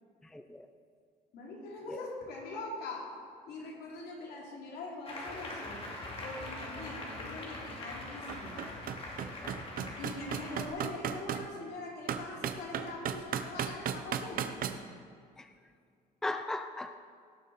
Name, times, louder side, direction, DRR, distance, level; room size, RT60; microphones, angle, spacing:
voice 1, 0.2-0.7 1.9-2.0 9.2-9.6 15.4-15.5 16.2-17.0, left 2 dB, 5° left, 8 dB, 0.5 m, -38 dB
voice 2, 1.3-3.1 3.5-5.8 6.2-8.7 10.0-14.5, left 2 dB, 70° left, -2 dB, 3.2 m, -42 dB
Applause, 5.1-10.7, left 1 dB, 35° left, 2.6 m, -43 dB
sound 1, 7.5-7.6 8.0-11.5 12.1-14.8, right 8 dB, 60° right, 0.8 m, -35 dB
17.5 x 7.6 x 4.2 m, 2.3 s
cardioid pair, 110°, 17 cm